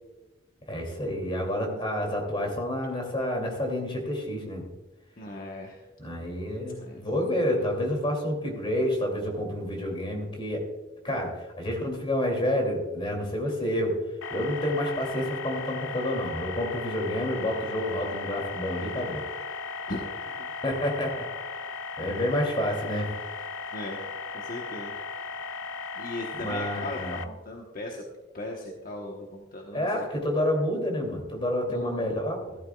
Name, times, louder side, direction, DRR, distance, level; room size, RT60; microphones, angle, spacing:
voice 1, 0.7-4.7 6.0-10.7 11.0-14.0 14.3-19.2 20.6-21.3 22.0-23.1 26.4-27.2 29.7-32.6, left 1 dB, 30° left, 1 dB, 2.7 m, -29 dB
voice 2, 5.2-5.9 6.8-7.2 19.9-20.5 23.7-24.0 24.3-24.9 26.0-28.0 28.3-30.3 31.7-32.2, left 1 dB, 50° left, 0 dB, 1.1 m, -39 dB
sound 1, 14.2-27.2, left 4 dB, 90° left, 0.6 m, -37 dB
15.0 x 13.0 x 2.3 m, 1.1 s
head